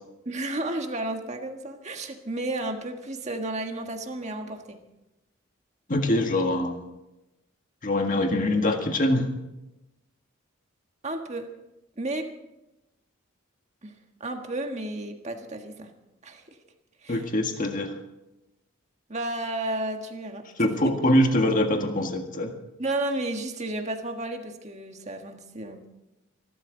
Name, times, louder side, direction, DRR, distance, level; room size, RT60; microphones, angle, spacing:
voice 1, 0.3-4.8 11.0-11.5 12.0-12.3 13.8-15.9 16.2-16.4 17.0-17.2 19.1-20.7 22.8-25.9, right 2 dB, 35° right, 4 dB, 1.6 m, -32 dB
voice 2, 5.9-6.8 7.8-9.3 17.1-17.9 20.6-22.5, left 1 dB, 40° left, 4 dB, 1.8 m, -23 dB
24.5 x 12.5 x 4.0 m, 0.95 s
head